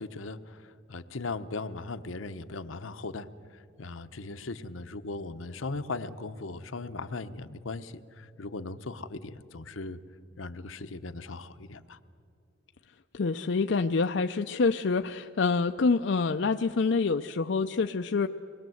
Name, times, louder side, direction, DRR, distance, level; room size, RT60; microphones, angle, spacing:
voice 1, 0.0-10.0 10.4-12.0, left 3 dB, 80° left, 11 dB, 0.9 m, -38 dB
voice 2, 13.1-18.3, left 4 dB, 65° left, 7 dB, 0.5 m, -26 dB
24.5 x 21.0 x 7.8 m, 2.5 s
head